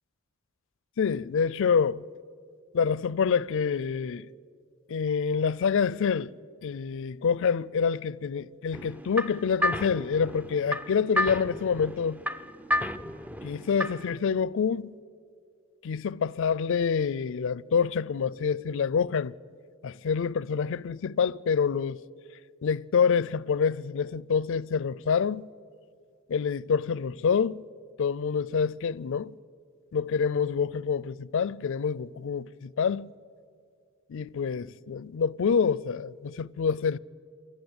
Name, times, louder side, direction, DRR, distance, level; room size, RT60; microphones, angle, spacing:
voice 1, 1.0-2.0 2.7-4.3 4.9-6.3 6.6-12.2 13.4-14.9 15.8-19.3 19.8-22.0 22.6-25.5 26.3-27.6 28.0-29.3 29.9-33.1 34.1-37.0, left 6 dB, 65° left, 0.4 m, -27 dB
sound 1, 8.7-14.2, left 1 dB, 5° right, 0.4 m, -32 dB
28.0 x 12.0 x 8.0 m
head